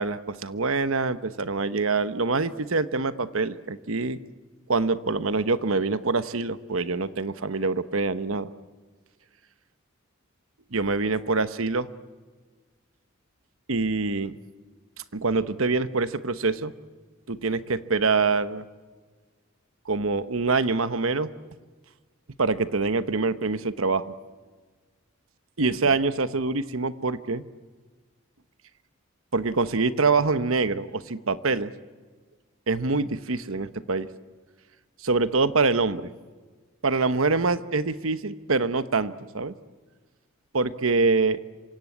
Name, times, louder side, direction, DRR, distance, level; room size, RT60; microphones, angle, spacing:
voice 1, 0.0-4.2 4.7-8.5 10.7-11.9 13.7-14.3 15.1-16.7 17.3-18.7 19.9-21.3 22.4-24.1 25.6-27.4 29.3-31.7 32.7-34.1 35.0-36.1 36.8-39.5 40.5-41.4, right 3 dB, 75° right, 13 dB, 1.1 m, -25 dB
27.0 x 24.5 x 8.7 m, 1.4 s
head